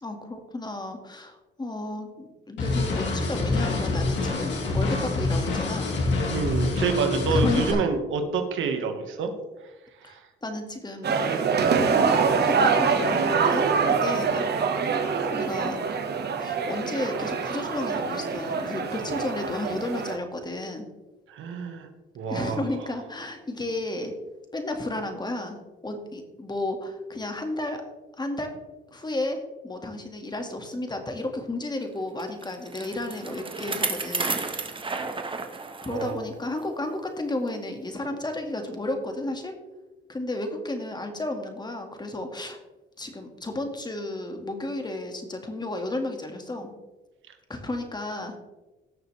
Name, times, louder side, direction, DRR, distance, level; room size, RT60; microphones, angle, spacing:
voice 1, 0.0-6.0 7.3-7.9 10.0-14.5 15.3-15.8 16.4-20.9 22.3-24.2 24.5-27.9 28.2-28.6 28.9-34.4 35.8-39.6 40.1-42.6 43.0-46.7 47.5-48.4, left 2 dB, 20° left, 4 dB, 1.9 m, -33 dB
sound 1, 2.6-7.7, left 3 dB, 65° left, 3.2 m, -26 dB
voice 2, 6.3-9.3 10.1-10.2 21.3-21.9 22.1-22.6 35.9-36.2, right 5 dB, 80° right, 6 dB, 1.6 m, -27 dB
sound 2, 11.0-20.2, right 5 dB, 55° right, 1.4 m, -25 dB
Bicycle, 32.2-36.1 36.6-36.7 37.5-37.6, right 4 dB, 25° right, 1.2 m, -32 dB
17.5 x 6.6 x 3.3 m, 1.1 s
cardioid pair, 90°, 20 cm